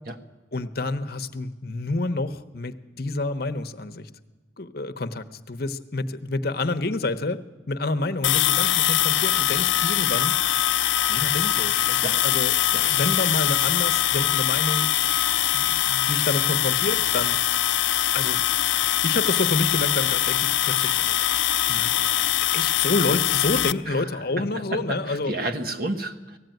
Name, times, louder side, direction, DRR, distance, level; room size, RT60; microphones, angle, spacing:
voice 1, 0.5-4.1 4.6-10.4 11.1-14.9 15.5-17.4 18.1-18.4 19.0-21.2 21.6-22.1 22.5-25.3, left 2 dB, 55° left, 8 dB, 0.9 m, -28 dB
sound 1, 8.2-23.7, left 12 dB, 85° left, 0.6 m, -22 dB
voice 2, 23.9-26.4, right 2 dB, 50° right, 6 dB, 1.4 m, -31 dB
19.0 x 15.0 x 9.2 m, 1.2 s
head